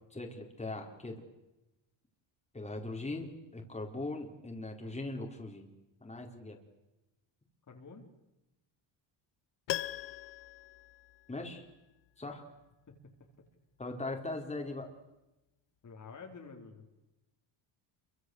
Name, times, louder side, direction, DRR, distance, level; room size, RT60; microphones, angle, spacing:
voice 1, 0.1-1.2 2.5-5.7 6.0-6.6 11.3-11.6 12.2-12.4 13.8-14.9, left 2 dB, 15° left, 2 dB, 4.8 m, -40 dB
voice 2, 7.7-8.1 12.9-13.0 15.8-16.9, left 4 dB, 35° left, 2 dB, 4.6 m, -49 dB
Piano, 9.7-11.8 12.1-12.2, left 14 dB, 60° left, 1.0 m, -40 dB
28.0 x 24.5 x 8.2 m, 0.98 s
cardioid pair, 110°, 50 cm